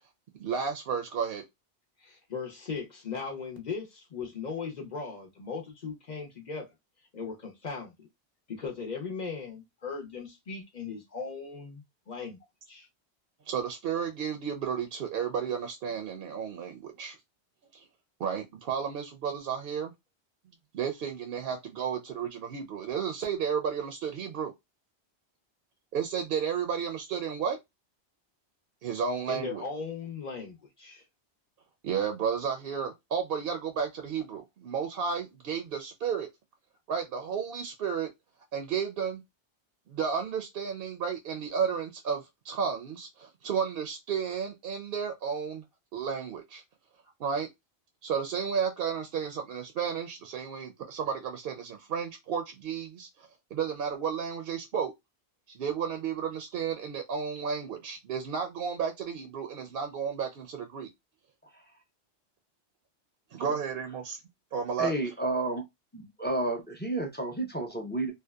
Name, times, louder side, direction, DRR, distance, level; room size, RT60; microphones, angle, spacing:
voice 1, 0.4-1.4 13.5-17.2 17.7-17.8 18.2-19.9 20.7-24.5 25.9-27.6 28.8-29.6 31.8-36.3 36.9-38.1 38.5-39.2 39.9-45.6 45.9-46.6 47.2-47.5 48.0-54.9 55.5-60.9 63.3-64.2 64.5-64.9, right 7 dB, 65° right, 0.7 m, -32 dB
voice 2, 2.0-6.7 7.1-8.1 8.5-12.4 12.7-12.9 29.3-31.0, left 5 dB, 50° left, 0.7 m, -38 dB
voice 3, 64.8-65.6 65.9-68.1, right 2 dB, 15° left, 0.5 m, -31 dB
2.7 x 2.2 x 2.2 m
omnidirectional pair, 1.1 m